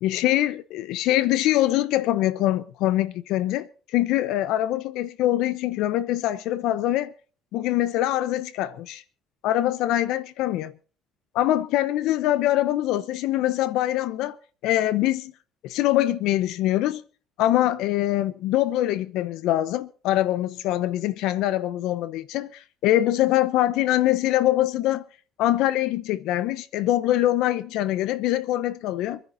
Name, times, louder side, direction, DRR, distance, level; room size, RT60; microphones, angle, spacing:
voice 1, 0.0-7.1 7.5-9.0 9.4-10.7 11.3-14.4 14.6-15.3 15.6-17.0 17.4-25.0 25.4-29.2, left 14 dB, 75° left, 0.8 m, -23 dB
26.0 x 10.5 x 4.0 m
cardioid pair, 145°, 0 cm